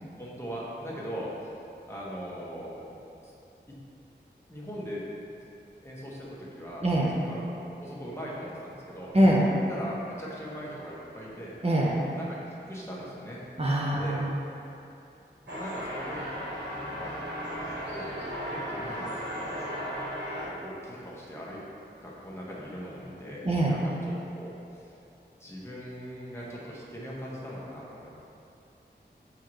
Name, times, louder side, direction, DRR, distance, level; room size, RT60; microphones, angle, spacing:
voice 1, 0.2-1.5 1.9-2.9 3.2-3.3 3.7-3.8 4.5-5.0 5.8-6.9 7.1-7.5 7.8-9.1 9.7-11.5 12.1-12.4 12.7-13.4 13.9-14.2 15.5-16.3 16.8-17.2 17.9-18.2 18.5-19.9 20.4-21.6 22.0-23.9 24.3-25.0 25.4-28.1, equal, 15° left, -6 dB, 1.3 m, -40 dB
voice 2, 6.8-7.1 9.1-9.5 11.6-12.0 13.6-14.3 23.4-23.8, right 1 dB, 35° right, -5 dB, 0.8 m, -23 dB
sound 1, 15.5-20.5, equal, 65° right, 1.4 m, -35 dB
7.2 x 4.6 x 3.1 m, 2.7 s
wide cardioid pair, 55°, 18 cm